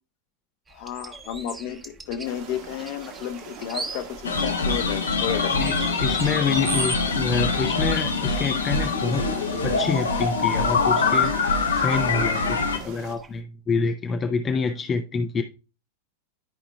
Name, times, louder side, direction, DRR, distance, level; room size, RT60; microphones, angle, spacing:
voice 1, 0.7-5.6, left 10 dB, 45° left, 0.9 m, -32 dB
sound 1, 0.7-13.4, right 3 dB, 15° right, 1.0 m, -40 dB
sound 2, 2.2-13.2, right 6 dB, 50° right, 1.6 m, -43 dB
sound 3, 4.2-12.8, left 4 dB, 70° left, 1.1 m, -24 dB
voice 2, 5.5-9.3 9.6-15.4, left 5 dB, 20° left, 0.6 m, -27 dB
12.5 x 4.9 x 2.3 m
figure-of-eight pair, 90°, 0 cm